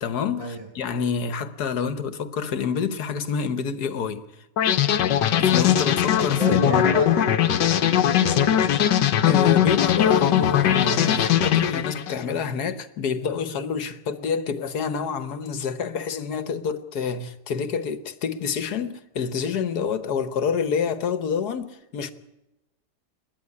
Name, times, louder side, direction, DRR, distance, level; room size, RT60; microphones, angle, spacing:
voice 1, 0.0-4.3 5.4-6.9 9.2-22.1, left 6 dB, 65° left, 1.5 m, -27 dB
sound 1, 4.6-12.2, left 10 dB, 85° left, 1.6 m, -20 dB
voice 2, 6.4-7.4 7.8-8.8, right 2 dB, 20° right, 1.7 m, -31 dB
29.5 x 10.0 x 9.8 m
omnidirectional pair, 1.8 m